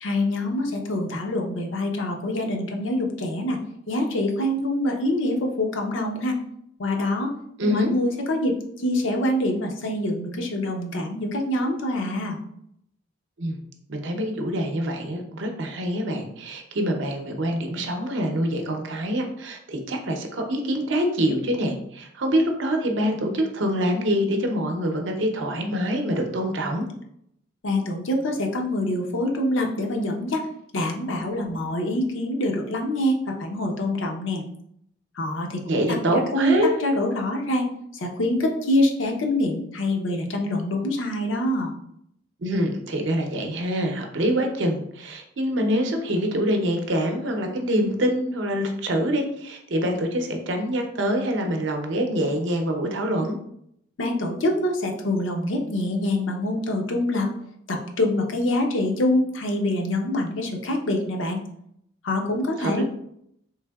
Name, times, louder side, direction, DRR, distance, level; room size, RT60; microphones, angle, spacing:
voice 1, 0.0-3.6 3.9-6.4 6.8-12.4 27.6-30.4 30.7-34.4 35.1-36.0 36.3-37.7 37.9-41.7 54.0-57.3 57.7-61.4 62.0-62.8, left 1 dB, 75° left, 2 dB, 0.6 m, -25 dB
voice 2, 7.6-7.9 13.4-13.6 13.9-26.9 35.7-36.7 42.4-53.4 62.6-62.8, equal, 70° right, 3 dB, 0.6 m, -25 dB
3.4 x 3.3 x 2.3 m, 0.72 s
head